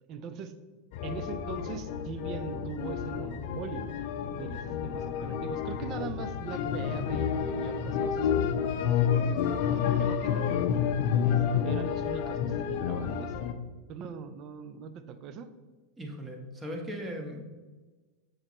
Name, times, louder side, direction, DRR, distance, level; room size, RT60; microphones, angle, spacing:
voice 1, 0.1-0.5 1.0-3.9 4.4-10.6 11.2-13.4 13.9-15.5, right 6 dB, 45° right, 10 dB, 0.6 m, -41 dB
sound 1, 0.9-13.5, left 8 dB, 55° left, 0.5 m, -29 dB
voice 2, 16.0-17.4, equal, 20° right, 2 dB, 1.2 m, -38 dB
6.4 x 6.3 x 3.0 m, 1.3 s
hypercardioid pair, 90°, 0 cm